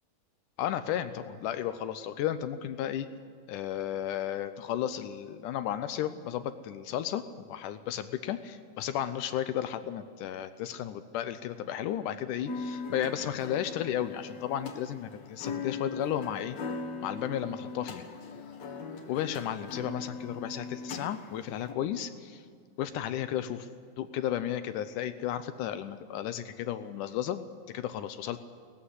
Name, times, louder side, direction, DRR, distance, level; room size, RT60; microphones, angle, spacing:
voice 1, 0.6-3.1 3.5-7.2 7.5-16.6 17.0-18.0 19.1-22.4 22.8-23.7 24.0-28.4, left 10 dB, 75° left, 11 dB, 2.0 m, -33 dB
sound 1, 12.5-21.7, left 4 dB, 50° left, 2.5 m, -40 dB
18.5 x 14.5 x 9.7 m, 2.1 s
omnidirectional pair, 4.2 m